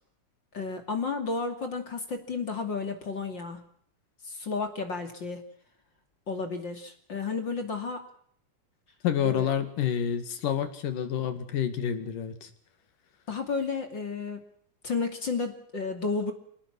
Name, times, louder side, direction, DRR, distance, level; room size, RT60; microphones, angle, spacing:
voice 1, 0.5-3.6 4.2-5.4 6.3-8.1 9.2-9.5 13.3-14.4 14.8-16.3, left 4 dB, 35° left, 6 dB, 3.0 m, -32 dB
voice 2, 9.0-12.5, left 9 dB, 70° left, 9 dB, 3.8 m, -28 dB
28.5 x 19.0 x 6.2 m, 0.64 s
omnidirectional pair, 4.0 m